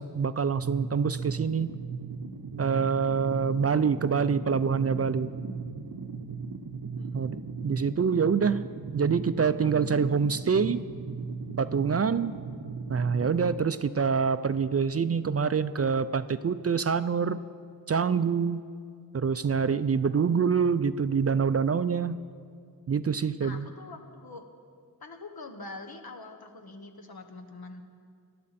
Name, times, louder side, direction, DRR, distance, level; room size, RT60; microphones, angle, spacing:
voice 1, 0.0-1.7 2.6-5.4 7.1-7.4 7.6-8.6 8.9-10.8 11.6-12.3 12.9-17.4 17.9-18.6 19.1-22.2 22.9-23.7, right 6 dB, 40° right, 13 dB, 0.4 m, -26 dB
sound 1, 0.6-13.6, right 4 dB, 65° right, 0.7 m, -37 dB
voice 2, 7.0-7.3 23.4-24.5 25.0-27.8, left 3 dB, 70° left, 4 dB, 1.3 m, -44 dB
19.0 x 12.0 x 4.2 m, 2.1 s
wide cardioid pair, 90°, 38 cm